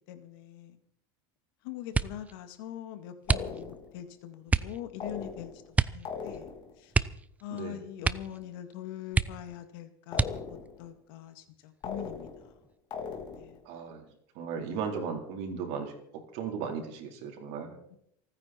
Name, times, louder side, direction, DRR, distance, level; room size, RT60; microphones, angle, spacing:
voice 1, 0.1-0.8 1.6-6.5 6.8-6.9 7.4-12.5 13.3-13.6 17.9-18.0, left 11 dB, 75° left, 8 dB, 2.1 m, -43 dB
sound 1, 1.9-2.3 3.2-3.9 4.5-4.8 5.7-6.1 6.3-6.4 6.9-7.6 8.0-8.4 8.7-8.8 9.1-9.6 10.1-10.7 11.4-12.0 12.4-12.8, right 4 dB, 10° right, 0.5 m, -29 dB
sound 2, 3.3-4.0 5.0-5.7 6.0-6.8 10.1-10.8 11.8-12.6 12.9-13.6, left 6 dB, 40° left, 3.0 m, -39 dB
voice 2, 13.6-14.0 14.3-15.9 16.3-17.8, right 6 dB, 60° right, 2 dB, 4.1 m, -36 dB
28.0 x 9.6 x 4.5 m, 0.74 s
supercardioid pair, 130°, 12 cm